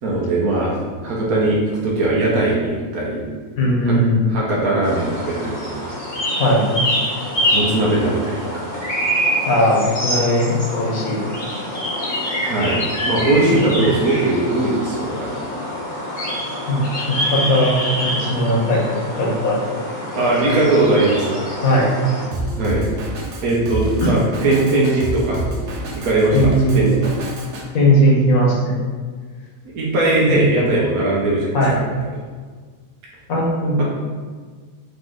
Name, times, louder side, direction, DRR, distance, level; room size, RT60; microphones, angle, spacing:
voice 1, 0.0-3.2 3.9-4.0 4.3-5.9 7.5-8.7 12.4-15.5 20.1-21.4 22.6-22.8 23.4-25.4 25.9-26.9 29.7-31.8 33.8-33.9, right 2 dB, 80° right, -4 dB, 1.2 m, -19 dB
voice 2, 3.6-4.3 6.4-6.9 9.5-11.3 16.7-16.8 17.1-19.7 21.6-21.9 24.0-24.1 26.3-26.8 27.7-28.9 30.3-30.4 31.5-31.7 33.3-33.8, equal, 75° left, -3 dB, 1.4 m, -18 dB
sound 1, 4.8-22.3, equal, 35° left, 1.1 m, -25 dB
Drum kit, 22.3-27.6, right 2 dB, 60° right, 0.9 m, -28 dB
4.1 x 3.0 x 3.8 m, 1.5 s
omnidirectional pair, 1.5 m